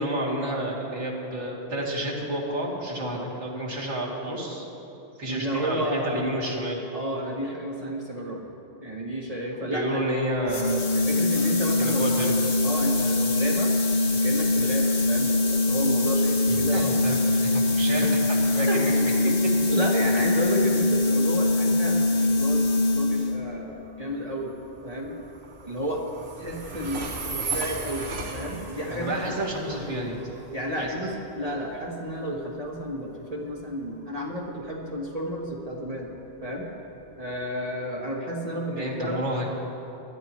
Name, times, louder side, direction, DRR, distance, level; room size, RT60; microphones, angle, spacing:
voice 1, 0.0-4.7 5.2-6.8 9.5-10.9 11.3-11.5 11.8-12.3 16.5-18.0 18.5-19.1 28.9-30.3 30.8-30.9 38.7-39.5, right 1 dB, 90° right, -6 dB, 3.0 m, -30 dB
voice 2, 5.2-6.3 6.9-8.4 8.8-10.0 10.9-12.1 12.6-13.7 14.1-16.9 17.9-18.1 18.7-18.8 19.2-19.3 19.7-25.2 25.6-26.0 26.4-29.3 30.5-36.1 36.4-36.7 37.2-39.2, equal, 35° right, -2 dB, 1.3 m, -31 dB
sound 1, 10.5-23.4, left 2 dB, 60° left, 1.6 m, -23 dB
Train, 22.5-37.3, right 3 dB, 65° right, 1.3 m, -38 dB
21.5 x 13.0 x 3.1 m, 3.0 s
omnidirectional pair, 1.2 m